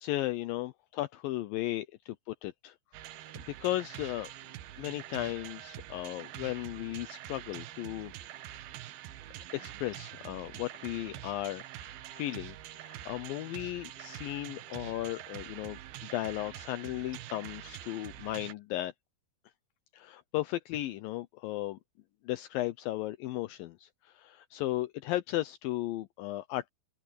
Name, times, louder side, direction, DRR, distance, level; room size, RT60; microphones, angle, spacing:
voice 1, 0.0-2.7 3.4-4.3 4.8-8.1 9.5-18.9 19.9-21.8 22.3-26.7, left 15 dB, 80° left, 2.4 m, -36 dB
sound 1, 2.9-18.5, right 13 dB, 90° right, 2.9 m, -45 dB
open air
omnidirectional pair, 4.2 m